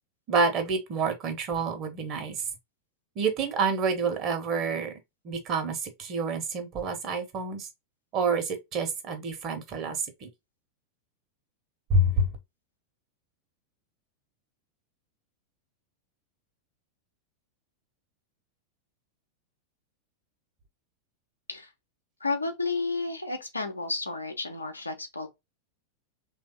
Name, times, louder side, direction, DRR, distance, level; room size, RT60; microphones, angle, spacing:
voice 1, 0.3-2.5 3.1-4.9 5.2-7.7 8.1-10.3 11.9-12.3, right 3 dB, 35° right, 1.2 m, -28 dB
voice 2, 22.2-25.3, left 3 dB, 80° left, 0.8 m, -31 dB
3.4 x 2.7 x 3.9 m
figure-of-eight pair, 90°, 0 cm